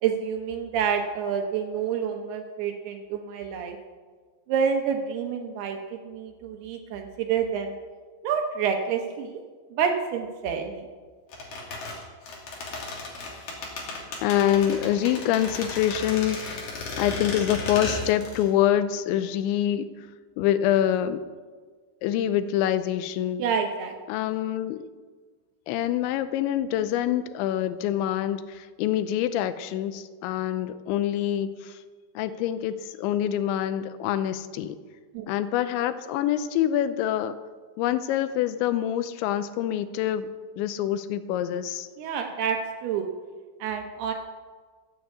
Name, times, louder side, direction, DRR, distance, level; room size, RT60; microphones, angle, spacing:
voice 1, 0.0-3.8 4.5-7.8 8.2-9.4 9.7-10.8 23.4-23.9 35.1-35.3 42.0-43.1 43.6-44.1, right 7 dB, 75° right, 4 dB, 2.6 m, -28 dB
sound 1, 11.3-18.5 18.7-18.8, left 3 dB, 50° left, 3.9 m, -34 dB
voice 2, 14.2-20.1 20.4-21.2 22.0-23.5 24.1-24.9 25.7-31.8 32.2-34.8 35.3-37.4 37.8-40.3 40.6-41.9, left 11 dB, 85° left, 12 dB, 2.9 m, -26 dB
14.5 x 8.0 x 8.3 m, 1.5 s
omnidirectional pair, 5.4 m